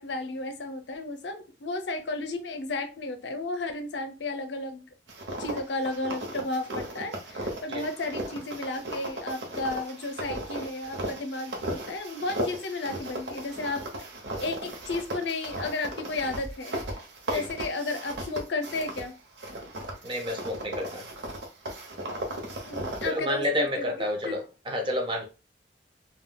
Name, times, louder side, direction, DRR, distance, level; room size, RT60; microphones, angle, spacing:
voice 1, 0.0-4.9 5.4-13.8 14.4-16.7 17.3-19.1 22.6-23.9 24.2-24.4, left 2 dB, 75° left, 0.5 m, -33 dB
sound 1, 5.1-19.1 19.4-23.2, right 1 dB, 75° right, 0.8 m, -36 dB
voice 2, 20.0-21.1 23.0-25.2, left 1 dB, 30° right, 0.6 m, -29 dB
3.5 x 2.2 x 2.2 m
head